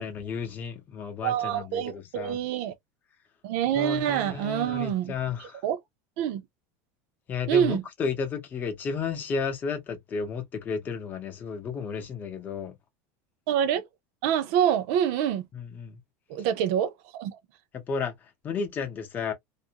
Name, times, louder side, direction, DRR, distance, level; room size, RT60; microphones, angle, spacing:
voice 1, 0.0-2.4 3.7-5.6 7.3-12.7 15.5-16.0 17.7-18.1 18.4-19.3, left 5 dB, 25° left, 0.7 m, -33 dB
voice 2, 1.2-2.7 3.4-5.1 5.4-5.8 6.2-6.4 7.5-7.8 13.5-13.9 14.2-15.5 16.3-17.4, right 9 dB, 60° right, 0.6 m, -26 dB
2.5 x 2.1 x 2.8 m
supercardioid pair, 165°, 8 cm